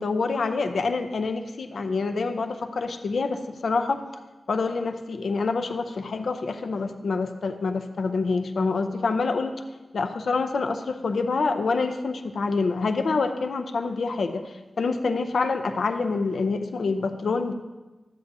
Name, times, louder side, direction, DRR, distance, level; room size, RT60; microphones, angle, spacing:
voice 1, 0.0-4.0 4.5-9.6 9.9-17.5, left 4 dB, 90° left, 7 dB, 0.5 m, -26 dB
12.0 x 8.2 x 2.6 m, 1.2 s
wide cardioid pair, 120°, 0 cm